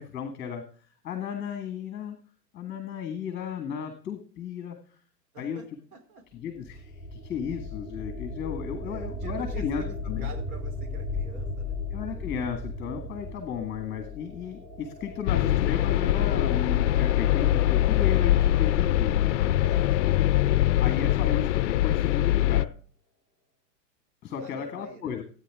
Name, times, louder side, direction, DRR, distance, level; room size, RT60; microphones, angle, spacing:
voice 1, 0.0-2.2 2.5-5.0 5.4-5.6 6.4-10.3 11.9-19.4 20.8-22.7 24.2-25.2, left 8 dB, 20° left, 8 dB, 1.8 m, -34 dB
voice 2, 5.3-5.6 5.9-6.2 8.8-11.8 19.6-20.2 24.4-25.1, right 3 dB, 60° right, 4 dB, 3.5 m, -47 dB
sound 1, 6.3-21.2, left 2 dB, 25° right, 3.1 m, -37 dB
sound 2, 15.3-22.6, left 13 dB, 50° left, 0.5 m, -23 dB
17.0 x 9.4 x 3.7 m, 0.42 s
hypercardioid pair, 125°, 50 cm